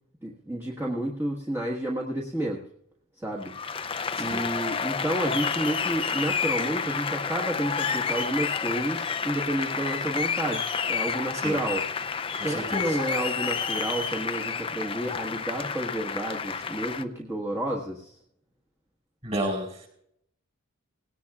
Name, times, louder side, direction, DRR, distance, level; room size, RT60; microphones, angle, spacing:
voice 1, 0.2-2.6 3.2-3.5 3.8-11.8 12.1-18.2, right 1 dB, 10° right, -3 dB, 1.4 m, -31 dB
Applause, 3.4-17.0, left 6 dB, 25° left, 0.5 m, -30 dB
voice 2, 4.1-4.5 11.3-11.6 12.4-13.0 19.2-19.9, right 1 dB, 30° right, 1 dB, 4.9 m, -32 dB
19.5 x 17.5 x 2.4 m, 0.73 s
head